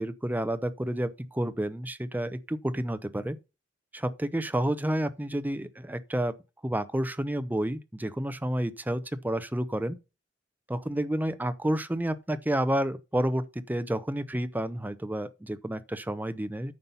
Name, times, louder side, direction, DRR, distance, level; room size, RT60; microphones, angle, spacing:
voice 1, 0.0-3.4 3.9-6.4 6.6-10.0 10.7-16.7, right 1 dB, 10° right, 0.6 m, -30 dB
9.6 x 5.6 x 5.6 m
head